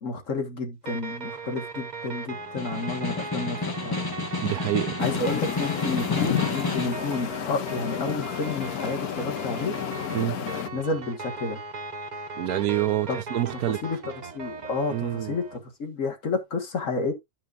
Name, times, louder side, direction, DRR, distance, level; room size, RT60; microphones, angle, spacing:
voice 1, 0.0-3.6 3.8-4.1 5.0-9.8 10.7-11.6 13.1-13.2 13.8-14.0 14.3-17.1, left 3 dB, 55° left, 1.9 m, -30 dB
sound 1, 0.8-15.6, right 4 dB, 40° right, 0.7 m, -38 dB
Snare drum, 2.4-7.1, left 3 dB, 25° left, 0.4 m, -31 dB
voice 2, 4.4-5.0 10.1-10.4 12.4-13.8 14.9-15.4, right 13 dB, 80° right, 1.2 m, -27 dB
sound 2, 5.0-10.7, left 10 dB, 75° left, 1.2 m, -31 dB
11.5 x 5.6 x 2.5 m
omnidirectional pair, 1.6 m